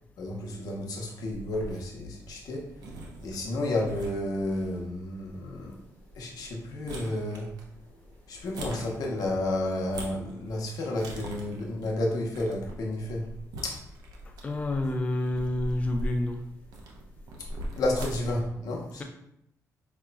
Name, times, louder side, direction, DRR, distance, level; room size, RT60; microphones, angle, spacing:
voice 1, 0.2-2.6 3.2-5.8 6.1-7.5 8.3-13.2 13.6-13.8 17.8-19.0, left 1 dB, 75° left, -1 dB, 0.9 m, -31 dB
sound 1, 1.3-18.5, right 1 dB, 85° right, 0.7 m, -42 dB
voice 2, 14.4-16.4, left 1 dB, 20° left, 3 dB, 0.3 m, -28 dB
4.9 x 3.0 x 2.2 m, 0.76 s
cardioid pair, 115°, 6 cm